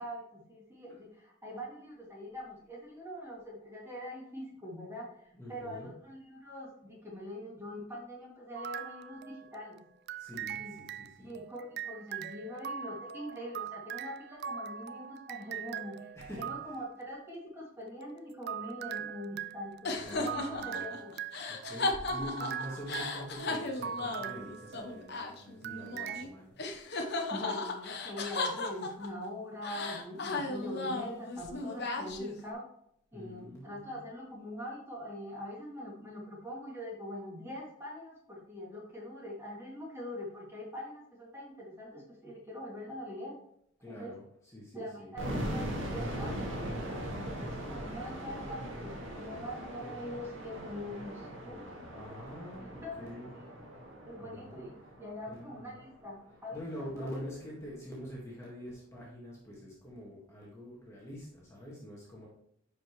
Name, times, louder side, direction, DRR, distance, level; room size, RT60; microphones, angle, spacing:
voice 1, 0.0-9.8 10.5-10.7 11.2-16.1 16.4-21.1 22.4-22.5 27.3-32.6 33.1-43.3 43.9-44.1 44.7-51.6 52.6-53.5 54.1-56.6 57.0-57.1, left 1 dB, 15° right, -4 dB, 2.4 m, -43 dB
voice 2, 5.3-5.9 10.2-11.3 16.1-16.5 19.8-20.9 21.5-26.6 33.1-34.0 43.8-45.1 51.9-53.3 54.2-54.7 55.3-55.7 56.5-62.3, equal, 15° left, -5 dB, 1.8 m, -45 dB
sound 1, 8.5-9.6 10.1-17.0 18.0-25.2 25.6-26.2, right 8 dB, 50° right, 0.3 m, -41 dB
sound 2, 19.8-26.3 26.6-29.2 29.6-32.5, left 3 dB, 55° left, 1.0 m, -36 dB
sound 3, 45.2-56.0, equal, 70° right, 2.0 m, -40 dB
10.0 x 5.2 x 3.1 m, 0.71 s
head